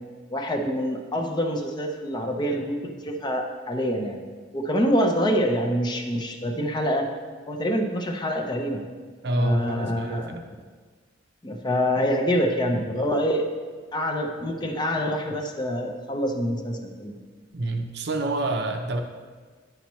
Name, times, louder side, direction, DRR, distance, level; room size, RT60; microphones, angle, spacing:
voice 1, 0.3-4.2 4.5-7.1 7.5-8.8 9.4-10.3 11.4-13.5 13.9-17.1, equal, 20° left, 3 dB, 0.6 m, -26 dB
voice 2, 9.2-10.5 17.5-19.0, right 1 dB, 60° right, 4 dB, 0.6 m, -27 dB
9.1 x 5.7 x 3.1 m, 1.5 s
head